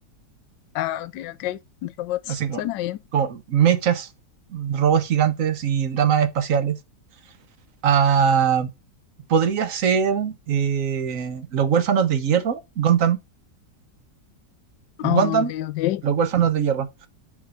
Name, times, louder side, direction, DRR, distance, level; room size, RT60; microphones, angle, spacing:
voice 1, 0.7-3.0 15.0-16.0, left 15 dB, 80° left, 1.3 m, -27 dB
voice 2, 2.3-2.6 3.1-4.1 4.5-6.8 7.8-8.7 9.3-13.2 15.0-15.5 16.0-16.9, right 8 dB, 55° right, 1.2 m, -21 dB
8.6 x 3.8 x 5.6 m
omnidirectional pair, 1.9 m